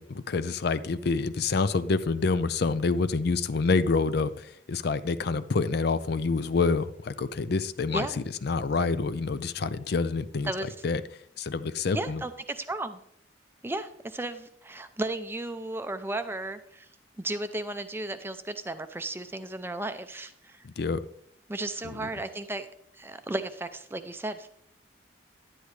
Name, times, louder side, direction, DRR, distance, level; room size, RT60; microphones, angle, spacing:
voice 1, 0.0-10.5 10.8-11.0 11.4-12.2 20.6-21.0 21.8-22.1, left 4 dB, 55° left, 13 dB, 0.4 m, -27 dB
voice 2, 7.9-8.2 10.4-10.7 11.9-13.0 13.6-16.9 17.2-20.6 21.5-22.7 22.9-24.5, right 2 dB, 10° right, 10 dB, 0.5 m, -34 dB
10.5 x 10.0 x 3.2 m, 0.70 s
head